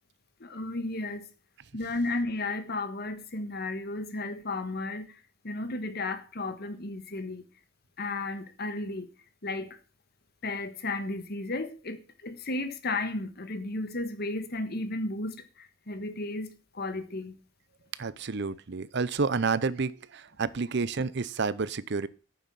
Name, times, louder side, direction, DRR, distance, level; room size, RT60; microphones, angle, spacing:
voice 1, 0.5-1.2 1.7-5.1 5.4-7.4 8.0-9.0 9.4-9.7 10.4-12.0 12.2-15.3 15.9-16.5 16.8-17.3, left 2 dB, 50° left, 1.4 m, -33 dB
voice 2, 18.0-22.1, right 4 dB, 60° right, 0.7 m, -30 dB
9.4 x 7.3 x 7.6 m
head